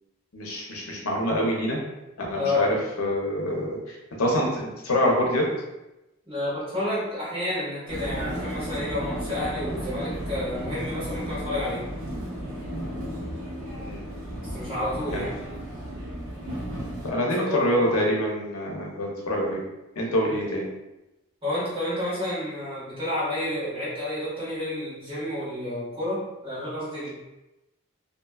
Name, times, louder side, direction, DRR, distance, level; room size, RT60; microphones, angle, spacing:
voice 1, 0.3-1.8 2.2-5.5 13.7-14.0 15.1-15.3 17.0-19.6 20.0-20.7, equal, 75° left, -1 dB, 0.6 m, -26 dB
voice 2, 2.3-2.7 6.2-11.8 14.4-15.4 17.3-17.9 20.2-20.3 21.4-27.1, left 1 dB, 25° right, -10 dB, 1.3 m, -30 dB
Vehicle, 7.9-17.1, equal, 75° right, 0.7 m, -34 dB
2.6 x 2.2 x 2.2 m, 0.97 s
head